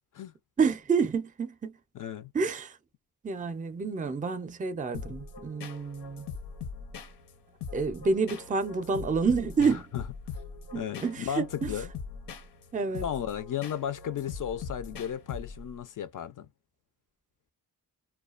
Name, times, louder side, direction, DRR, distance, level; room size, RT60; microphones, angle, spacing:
voice 1, 0.6-1.7 2.3-2.8 3.2-6.3 7.7-9.9 10.7-11.7 12.7-13.0, right 5 dB, 20° right, 0.4 m, -29 dB
voice 2, 1.9-2.3 9.9-10.0 10.7-11.9 13.0-16.5, left 10 dB, 55° left, 0.4 m, -34 dB
sound 1, 4.9-15.8, left 5 dB, 90° left, 0.8 m, -42 dB
2.3 x 2.2 x 2.3 m
wide cardioid pair, 125°, 39 cm